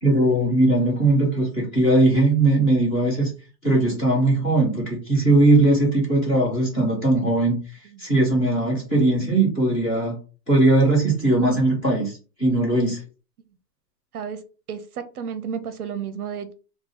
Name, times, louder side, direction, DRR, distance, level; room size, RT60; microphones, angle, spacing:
voice 1, 0.0-3.3 3.6-7.6 8.0-10.2 10.5-13.0, right 2 dB, 15° left, 1.2 m, -19 dB
voice 2, 14.7-16.5, right 7 dB, 60° right, 0.6 m, -32 dB
3.7 x 2.3 x 4.3 m
hypercardioid pair, 180°, 49 cm